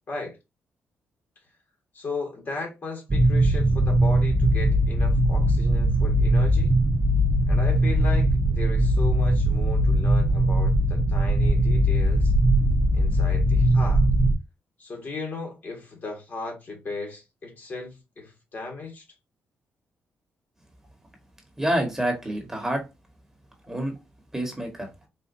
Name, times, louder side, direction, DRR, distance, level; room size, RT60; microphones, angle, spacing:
voice 1, 0.1-0.4 1.9-6.7 7.5-12.3 12.9-14.0 14.8-19.0, left 3 dB, 45° left, 1.7 m, -36 dB
sound 1, 3.1-14.3, right 1 dB, 25° right, 0.7 m, -20 dB
voice 2, 21.6-22.8 23.7-23.9 24.3-24.9, right 1 dB, 10° right, 1.3 m, -27 dB
4.2 x 2.5 x 2.6 m
cardioid pair, 100°, 4 cm